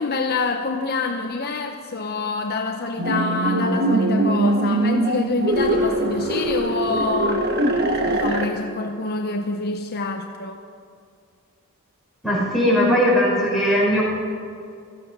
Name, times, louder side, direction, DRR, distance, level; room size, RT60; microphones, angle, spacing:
voice 1, 0.0-7.5 8.0-10.6, left 3 dB, 45° left, 5 dB, 0.7 m, -26 dB
sound 1, 3.0-8.5, right 1 dB, 45° right, 1.4 m, -22 dB
voice 2, 12.2-14.0, equal, ahead, -6 dB, 5.1 m, -19 dB
16.0 x 14.0 x 5.3 m, 2.3 s
head